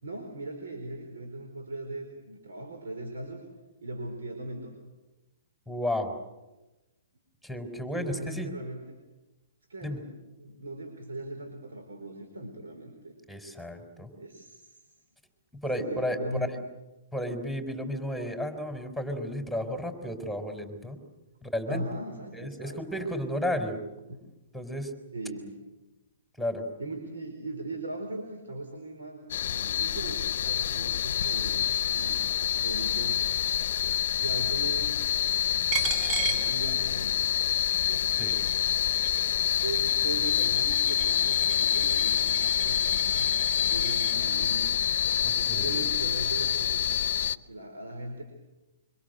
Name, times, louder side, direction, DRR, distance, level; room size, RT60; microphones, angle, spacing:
voice 1, 0.0-3.4 3.8-4.8 7.9-8.8 9.7-13.1 14.1-14.9 15.8-16.6 21.7-23.1 24.1-24.2 25.1-25.6 26.8-33.2 34.1-35.1 36.2-37.4 37.8-38.1 39.6-44.8 45.5-47.0 47.4-48.2, right 2 dB, 80° right, 5 dB, 4.4 m, -39 dB
voice 2, 5.7-6.1 7.4-8.5 9.8-10.0 13.3-14.1 15.5-16.2 17.1-21.0 21.4-21.8 22.3-23.8 24.5-24.9 26.4-26.6 38.2-38.3 45.2-45.8, equal, ahead, 6 dB, 4.1 m, -33 dB
sound 1, 29.3-47.4, left 10 dB, 60° left, 0.8 m, -27 dB
Coin (dropping), 35.7-37.2 37.6-44.2, right 7 dB, 35° right, 6.9 m, -38 dB
25.5 x 25.0 x 8.0 m, 1.1 s
hypercardioid pair, 125°, 0 cm